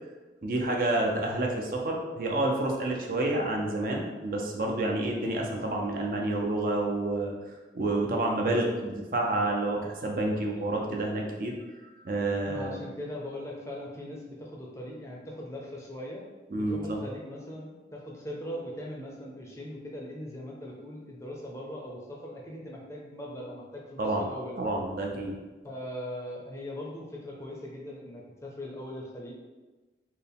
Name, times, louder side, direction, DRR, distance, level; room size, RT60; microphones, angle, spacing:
voice 1, 0.4-7.3 7.7-11.5 12.0-12.8 16.5-17.0 24.0-24.3 24.6-25.4, right 2 dB, 50° right, 0 dB, 0.5 m, -29 dB
voice 2, 12.4-16.2 16.5-24.6 25.6-29.3, left 1 dB, 15° left, -2 dB, 0.5 m, -40 dB
4.5 x 2.0 x 3.4 m, 1.2 s
head